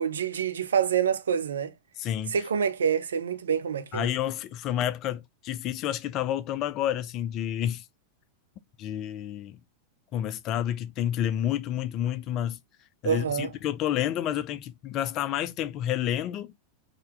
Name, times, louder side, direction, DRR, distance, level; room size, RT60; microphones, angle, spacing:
voice 1, 0.0-1.7 2.3-4.1 13.0-13.5, right 7 dB, 65° right, 0.5 m, -27 dB
voice 2, 2.0-2.3 3.9-7.8 8.8-9.6 10.1-12.6 13.0-16.5, left 11 dB, 35° left, 0.4 m, -29 dB
3.8 x 2.7 x 3.2 m
figure-of-eight pair, 90°, 0 cm